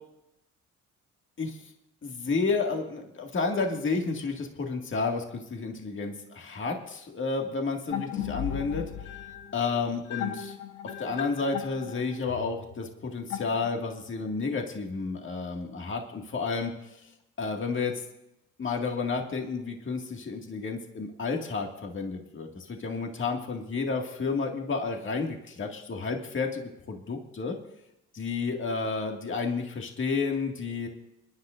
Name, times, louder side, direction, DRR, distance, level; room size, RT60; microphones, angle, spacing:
voice 1, 2.0-8.9 9.5-10.6 11.0-17.0 17.4-18.0 18.6-27.6 28.1-30.9, left 4 dB, 40° left, 2 dB, 2.0 m, -31 dB
sound 1, 7.9-14.1, left 10 dB, 70° left, 1.3 m, -37 dB
27.5 x 10.5 x 2.5 m, 0.87 s
cardioid pair, 90°, 30 cm